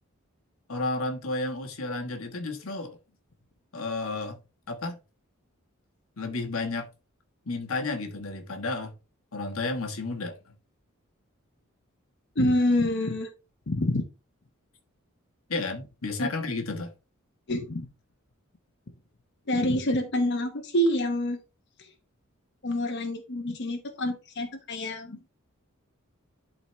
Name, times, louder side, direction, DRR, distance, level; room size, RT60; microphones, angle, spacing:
voice 1, 0.7-3.0 3.7-4.4 4.7-5.0 6.2-6.9 7.5-8.9 9.3-10.5 15.5-16.9, left 3 dB, 80° left, 1.3 m, -32 dB
voice 2, 12.4-13.3 13.7-14.0 16.2-16.3 17.5-17.9 19.5-21.4 21.8-21.9 22.6-25.3, left 1 dB, 55° left, 1.0 m, -27 dB
11.0 x 4.0 x 3.1 m
head